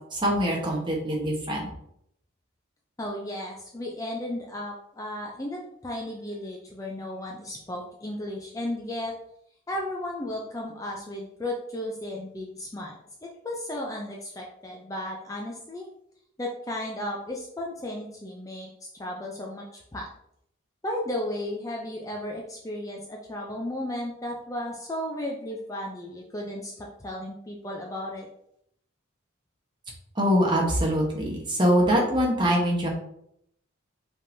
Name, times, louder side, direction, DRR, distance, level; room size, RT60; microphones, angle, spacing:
voice 1, 0.1-1.7 30.2-32.9, equal, 25° right, -1 dB, 1.0 m, -23 dB
voice 2, 3.0-9.1 9.7-15.9 16.4-20.1 20.8-28.3, left 1 dB, 15° left, -1 dB, 0.4 m, -34 dB
5.2 x 3.5 x 2.7 m, 0.73 s
head